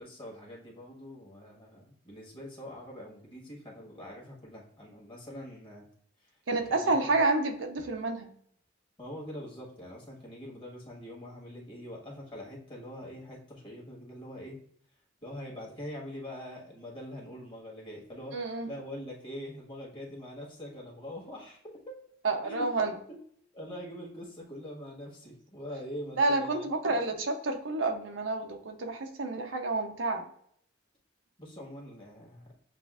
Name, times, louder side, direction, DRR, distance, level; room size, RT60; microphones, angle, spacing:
voice 1, 0.0-5.9 6.7-7.1 9.0-14.6 15.2-18.4 18.7-22.0 22.4-22.7 23.1-23.2 23.5-27.0 31.4-32.5, equal, 30° left, -3 dB, 1.5 m, -43 dB
voice 2, 6.5-8.3 18.3-18.7 22.2-23.0 26.2-30.3, right 3 dB, 90° right, 4 dB, 0.7 m, -29 dB
7.5 x 2.5 x 2.4 m, 0.63 s
head